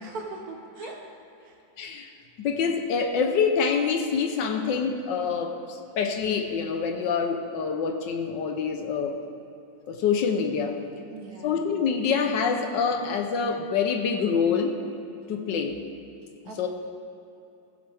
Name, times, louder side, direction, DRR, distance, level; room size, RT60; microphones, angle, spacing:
voice 1, 0.0-1.0 1.4-1.6 11.1-11.7 16.5-16.7, right 3 dB, 60° right, 1 dB, 1.5 m, -40 dB
voice 2, 1.8-2.1 2.4-5.5 6.0-9.2 9.9-10.8 11.4-14.8 15.3-15.8 16.6-16.7, left 6 dB, 75° left, 5 dB, 1.4 m, -26 dB
15.5 x 7.7 x 3.5 m, 2.8 s
omnidirectional pair, 2.0 m